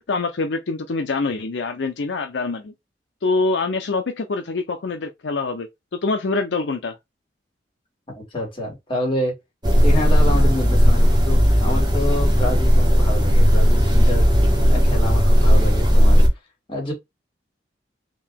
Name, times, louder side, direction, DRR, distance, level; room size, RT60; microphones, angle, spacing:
voice 1, 0.0-2.7 3.2-7.0, left 3 dB, 75° left, 0.6 m, -25 dB
voice 2, 8.2-9.3 9.8-16.2 16.7-16.9, left 1 dB, 30° left, 2.0 m, -28 dB
sound 1, 9.6-16.3, equal, 25° right, 1.4 m, -15 dB
3.9 x 2.7 x 3.5 m
head